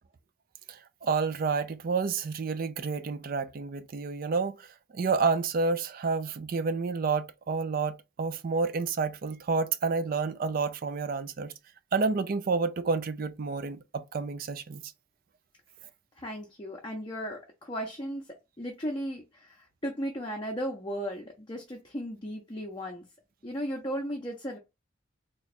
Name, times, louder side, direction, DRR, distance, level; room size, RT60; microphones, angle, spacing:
voice 1, 0.7-4.6 4.9-11.5 11.9-14.8, right 4 dB, 45° right, 0.4 m, -29 dB
voice 2, 16.2-18.2 18.6-23.0 23.4-24.6, equal, 25° left, 0.6 m, -36 dB
3.0 x 2.3 x 4.1 m
head